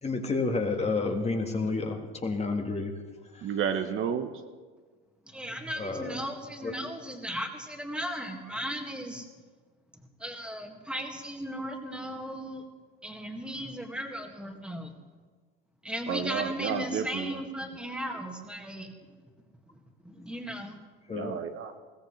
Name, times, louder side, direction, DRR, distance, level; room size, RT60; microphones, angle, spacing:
voice 1, 0.0-2.9 5.8-6.2 6.6-6.7 21.1-21.4, left 3 dB, 20° left, 3 dB, 1.7 m, -30 dB
voice 2, 3.4-4.3 16.1-17.4 21.1-21.7, right 8 dB, 45° right, 6 dB, 1.0 m, -31 dB
voice 3, 5.3-9.3 10.2-12.6 13.0-14.9 15.8-19.1 20.0-20.8, equal, 5° right, 3 dB, 1.9 m, -36 dB
21.0 x 16.0 x 3.3 m, 1.5 s
supercardioid pair, 105°, 30 cm